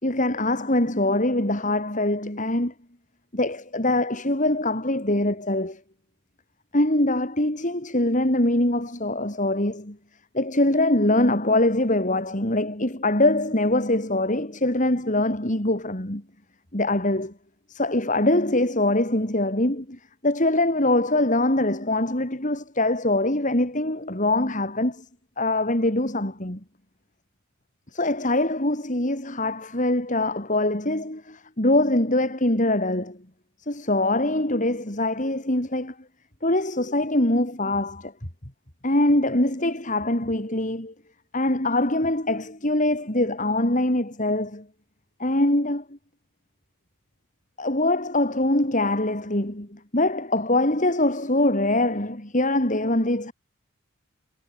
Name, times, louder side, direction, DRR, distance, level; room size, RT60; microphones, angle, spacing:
voice 1, 0.0-2.7 3.3-5.8 6.7-10.0 10.3-16.2 16.7-17.3 17.7-25.0 25.4-26.6 27.9-33.2 33.7-35.9 36.4-38.1 38.8-40.9 41.3-44.7 45.2-45.8 47.6-53.3, left 1 dB, 35° left, 3.4 m, -23 dB
head